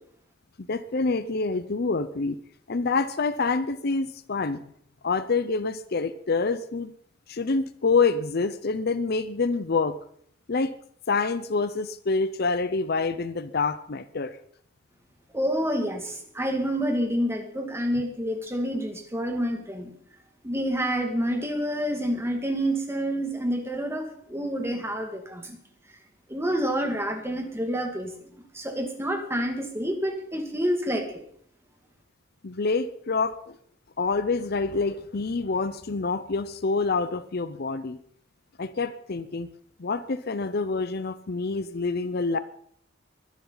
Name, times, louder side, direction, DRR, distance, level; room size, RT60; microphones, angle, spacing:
voice 1, 0.6-2.4 2.7-4.6 5.0-6.9 7.3-10.0 10.5-10.7 11.1-14.4 32.4-33.6 34.0-38.0 38.6-39.5 39.8-42.4, left 4 dB, 55° left, 13 dB, 0.7 m, -27 dB
voice 2, 15.3-19.9 20.4-25.6 26.3-28.1 28.5-31.2, equal, 15° right, 4 dB, 2.1 m, -28 dB
22.0 x 11.5 x 4.0 m, 0.64 s
head